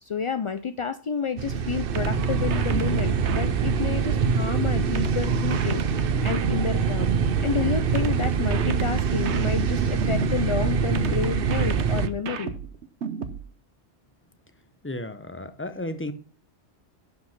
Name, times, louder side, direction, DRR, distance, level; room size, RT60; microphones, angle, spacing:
voice 1, 0.0-7.1 7.4-12.5, left 6 dB, 50° left, 0.3 m, -30 dB
sound 1, 1.4-12.1, right 6 dB, 55° right, 0.8 m, -24 dB
sound 2, 1.9-4.4 4.9-7.4 7.9-10.4 10.9-13.4, right 6 dB, 75° right, 1.2 m, -33 dB
voice 2, 14.8-16.1, left 1 dB, 10° left, 0.8 m, -33 dB
11.5 x 5.4 x 5.9 m
omnidirectional pair, 1.2 m